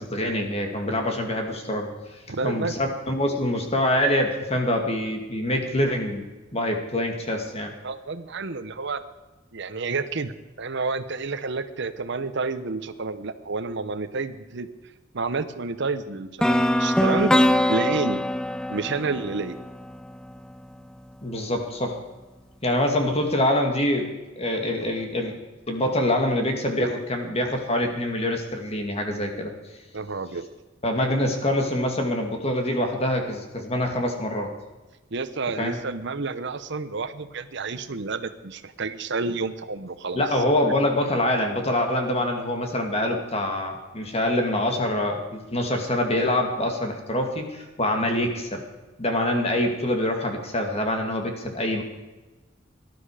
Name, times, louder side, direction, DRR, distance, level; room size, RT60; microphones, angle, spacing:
voice 1, 0.0-1.9 2.4-6.2 6.5-7.7 21.2-22.0 22.6-24.1 24.4-25.3 25.7-29.5 30.8-34.5 35.6-35.8 40.1-48.6 49.0-51.8, left 1 dB, 30° left, 3 dB, 2.4 m, -25 dB
voice 2, 2.3-2.7 7.8-9.0 9.5-10.3 10.6-14.7 15.1-17.3 17.7-18.2 18.7-19.6 29.9-30.4 35.1-40.2, right 4 dB, 60° right, 11 dB, 0.9 m, -29 dB
sound 1, 16.4-20.4, left 1 dB, 5° left, 0.5 m, -23 dB
18.5 x 12.0 x 5.0 m, 1.2 s
head